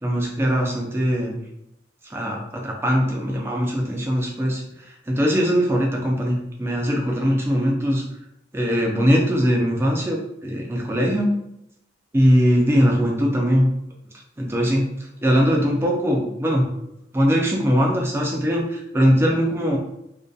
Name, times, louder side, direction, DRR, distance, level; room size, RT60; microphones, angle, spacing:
voice 1, 0.0-1.4 2.1-8.0 8.5-11.3 12.1-13.7 14.4-14.9 15.2-16.7 17.1-19.8, equal, 15° right, -1 dB, 0.3 m, -21 dB
2.6 x 2.2 x 2.3 m, 0.81 s
head